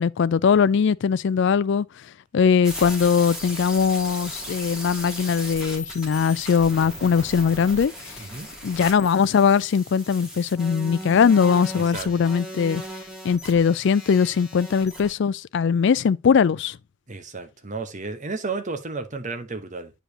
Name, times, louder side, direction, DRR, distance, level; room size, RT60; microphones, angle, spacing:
voice 1, 0.0-1.9 2.3-7.9 8.6-12.8 13.2-16.8, left 6 dB, 60° left, 0.4 m, -20 dB
sound 1, 2.6-15.1, equal, 5° right, 2.7 m, -37 dB
voice 2, 11.8-12.3 17.1-19.9, right 3 dB, 40° right, 1.1 m, -33 dB
8.9 x 5.0 x 2.9 m
head